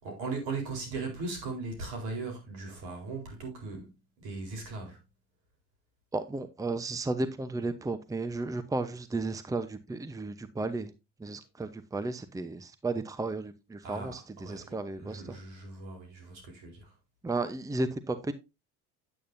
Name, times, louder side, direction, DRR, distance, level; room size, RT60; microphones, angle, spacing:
voice 1, 0.0-3.9 4.2-5.0 13.8-14.7 15.0-17.0, right 3 dB, 75° right, 4.0 m, -38 dB
voice 2, 6.1-10.9 11.2-15.2 17.2-18.3, right 3 dB, 10° right, 0.8 m, -34 dB
9.1 x 8.5 x 2.6 m
hypercardioid pair, 75°, 33 cm